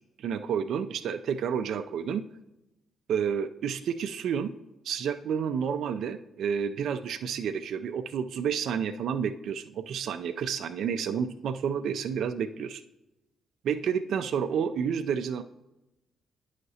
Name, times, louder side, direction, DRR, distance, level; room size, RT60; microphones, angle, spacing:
voice 1, 0.2-2.2 3.1-4.5 4.8-12.8 13.6-15.4, right 7 dB, 70° right, 8 dB, 0.3 m, -30 dB
9.7 x 5.7 x 2.7 m, 0.95 s
supercardioid pair, 55°, 0 cm